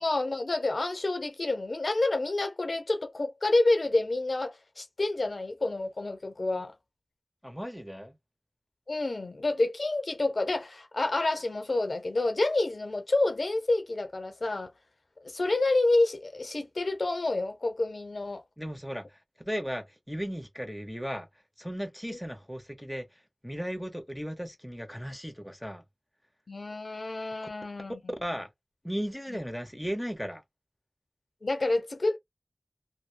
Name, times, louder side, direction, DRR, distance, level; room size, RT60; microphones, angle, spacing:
voice 1, 0.0-6.7 8.9-14.7 15.2-18.4 22.1-22.2 26.5-28.1 31.4-32.2, left 2 dB, 90° left, 0.6 m, -28 dB
voice 2, 7.4-8.2 18.6-19.2 19.4-21.3 21.6-25.8 28.2-28.5 28.8-30.4, equal, 5° left, 0.8 m, -36 dB
2.9 x 2.1 x 2.2 m
wide cardioid pair, 55°, 0 cm